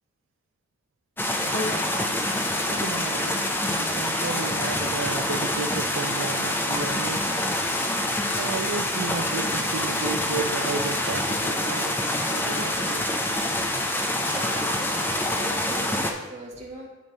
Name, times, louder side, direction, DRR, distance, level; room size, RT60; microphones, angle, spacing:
sound 1, 1.2-16.1, left 1 dB, 10° left, 0.5 m, -26 dB
sound 2, 1.5-10.1 10.8-10.9, left 1 dB, 70° left, 1.1 m, -43 dB
voice 1, 2.6-7.5 8.4-12.0 12.3-13.3, right 4 dB, 80° right, 5 dB, 0.5 m, -33 dB
voice 2, 14.2-16.9, right 1 dB, 35° right, -3 dB, 1.5 m, -39 dB
9.5 x 3.7 x 4.3 m, 1.1 s
head